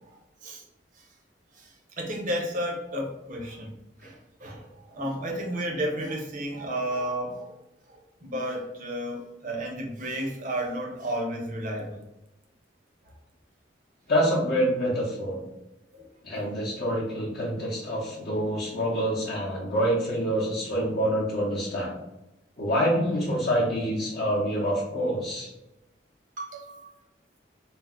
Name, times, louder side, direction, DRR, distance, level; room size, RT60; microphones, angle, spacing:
voice 1, 2.0-7.6 8.2-12.0 15.9-16.1 16.3-16.5 26.4-26.9, right 1 dB, 45° right, 0 dB, 0.6 m, -32 dB
voice 2, 14.1-15.4 16.2-21.9 22.6-25.5, equal, 50° left, -8 dB, 0.6 m, -26 dB
2.5 x 2.0 x 3.6 m, 0.92 s
head